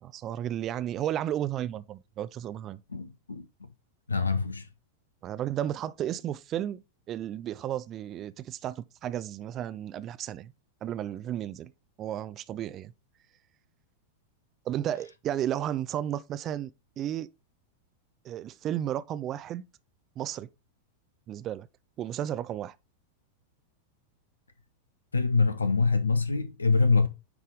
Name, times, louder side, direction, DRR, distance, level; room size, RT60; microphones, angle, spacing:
voice 1, 0.0-2.8 5.2-6.8 7.1-10.5 10.8-11.7 12.0-12.9 14.7-17.3 18.2-19.7 20.2-20.5 21.3-21.7 22.0-22.8, right 11 dB, 30° right, 0.4 m, -33 dB
voice 2, 2.9-3.7 4.1-4.7 25.1-27.1, left 4 dB, 75° left, 0.5 m, -25 dB
9.5 x 3.3 x 3.8 m
figure-of-eight pair, 90°, 0 cm